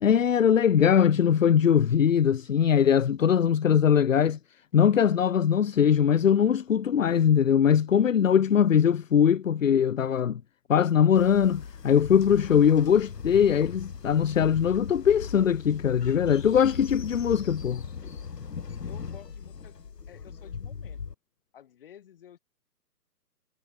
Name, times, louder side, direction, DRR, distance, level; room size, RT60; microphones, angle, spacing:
voice 1, 0.0-4.4 4.7-10.4 10.7-17.8, left 8 dB, 55° left, 0.6 m, -21 dB
Train, 11.1-21.1, left 6 dB, 75° left, 3.5 m, -39 dB
voice 2, 18.8-19.8 20.1-21.0 21.5-22.4, left 10 dB, 35° left, 7.9 m, -51 dB
hypercardioid pair, 170°, 49 cm